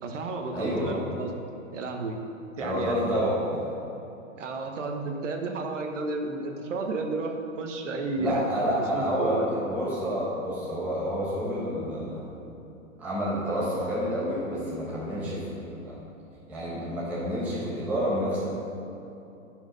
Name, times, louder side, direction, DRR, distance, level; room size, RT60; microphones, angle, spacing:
voice 1, 0.0-1.3 1.7-2.2 2.6-3.0 4.3-8.4 8.8-9.5, right 3 dB, 65° right, 3 dB, 1.1 m, -32 dB
voice 2, 0.5-1.0 2.6-3.6 8.2-12.3 13.0-15.9 16.5-18.5, equal, 5° right, -9 dB, 0.9 m, -29 dB
9.7 x 5.0 x 5.2 m, 2.9 s
hypercardioid pair, 175°, 40 cm